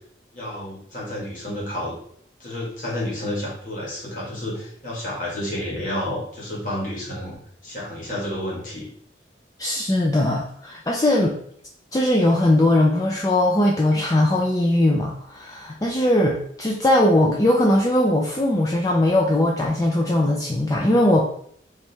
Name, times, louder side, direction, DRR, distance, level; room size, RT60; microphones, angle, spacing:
voice 1, 0.3-2.0 2.4-7.4 7.6-8.8, left 1 dB, 45° left, -5 dB, 1.8 m, -30 dB
voice 2, 9.6-11.3 11.9-21.3, left 1 dB, 20° left, -1 dB, 0.4 m, -20 dB
3.4 x 3.2 x 4.5 m, 0.64 s
head